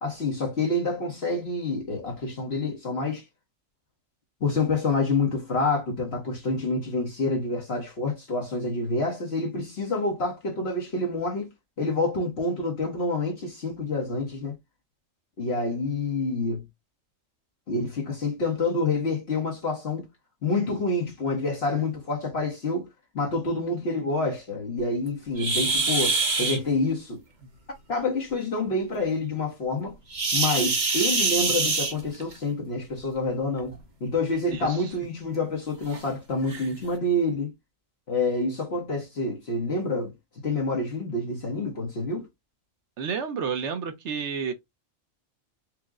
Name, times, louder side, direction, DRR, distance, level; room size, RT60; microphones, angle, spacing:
voice 1, 0.0-3.2 4.4-11.5 11.8-14.5 15.4-16.6 17.7-20.1 20.4-22.9 23.1-27.2 27.9-30.0 30.3-37.5 38.1-40.1 40.4-42.3, left 2 dB, 55° left, 1.2 m, -27 dB
sound 1, 25.4-26.6 30.1-32.4 33.6-33.8 34.3-34.4 35.0-35.1 35.9-36.0 36.5-36.7, right 3 dB, 40° right, 1.0 m, -25 dB
voice 2, 43.0-44.5, right 6 dB, 65° right, 1.0 m, -30 dB
4.7 x 2.1 x 3.6 m
omnidirectional pair, 1.4 m